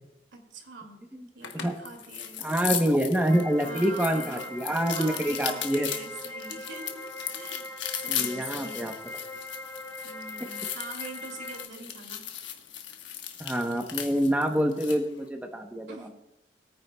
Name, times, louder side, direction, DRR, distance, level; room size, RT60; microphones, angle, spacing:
voice 1, 0.3-1.0 1.3-2.4 3.6-4.5 4.9-7.1 7.3-7.7 8.0-8.9 10.0-12.3 15.9-16.1, right 3 dB, 80° right, 3 dB, 2.2 m, -43 dB
sound 1, 1.4-15.1, left 9 dB, 75° left, 1.2 m, -37 dB
voice 2, 2.4-5.9 8.1-8.9 13.4-16.1, equal, 10° right, 4 dB, 0.8 m, -26 dB
sound 2, 3.3-11.6, left 2 dB, 15° left, 1.7 m, -41 dB
21.5 x 9.4 x 2.2 m, 0.93 s
head